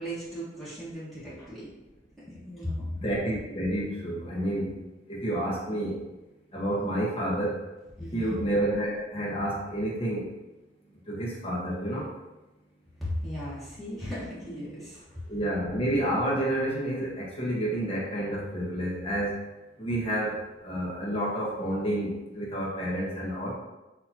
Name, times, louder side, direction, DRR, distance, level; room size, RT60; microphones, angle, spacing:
voice 1, 0.0-1.7 2.4-2.9 8.0-8.4 13.0-15.2, equal, ahead, -11 dB, 1.3 m, -36 dB
voice 2, 2.9-4.8 5.1-6.0 6.5-7.6 8.1-10.3 11.1-12.1 15.3-19.5 19.8-23.5, right 1 dB, 30° left, -5 dB, 1.2 m, -29 dB
6.7 x 2.8 x 2.8 m, 1.0 s
head